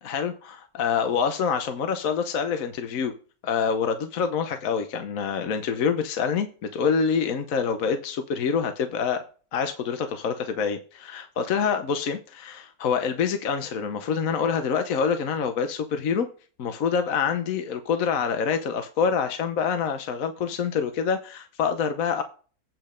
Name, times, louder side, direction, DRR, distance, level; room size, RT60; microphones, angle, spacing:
voice 1, 0.0-3.1 3.4-9.2 9.5-16.3 16.6-22.2, left 6 dB, 65° left, 1.3 m, -26 dB
9.0 x 5.3 x 5.1 m
omnidirectional pair, 1.6 m